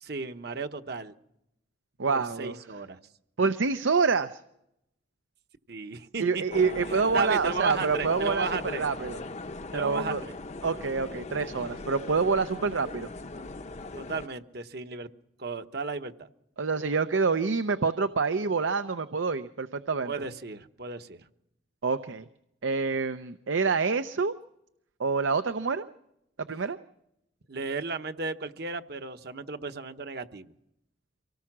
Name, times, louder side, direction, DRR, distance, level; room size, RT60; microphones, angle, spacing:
voice 1, 0.0-1.1 2.1-3.0 5.7-6.4 7.1-8.9 9.7-10.3 13.9-15.1 15.4-16.1 20.0-21.3 27.5-30.5, right 4 dB, 55° right, 8 dB, 1.0 m, -34 dB
voice 2, 2.0-2.6 3.4-4.4 6.2-9.2 9.7-10.2 10.6-13.1 16.6-20.1 21.8-22.2 22.6-24.3 25.0-25.9 26.4-26.8, right 4 dB, 85° right, 11 dB, 0.7 m, -27 dB
sound 1, 6.5-14.3, left 2 dB, 35° left, 0.7 m, -39 dB
25.0 x 18.5 x 6.1 m, 0.80 s
head